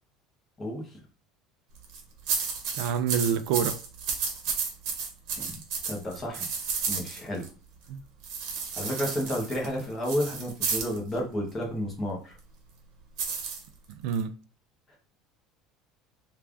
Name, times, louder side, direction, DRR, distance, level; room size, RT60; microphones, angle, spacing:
sound 1, 1.8-2.0 2.3-7.5 8.2-11.0 13.2-14.2, right 5 dB, 55° right, 0.9 m, -32 dB
voice 1, 2.7-3.8 7.9-8.0 14.0-14.4, right 8 dB, 70° right, 0.3 m, -27 dB
voice 2, 5.8-6.5 6.9-7.5 8.7-12.3, equal, 15° left, 1.1 m, -31 dB
3.4 x 2.4 x 3.4 m
cardioid pair, 165°, 0 cm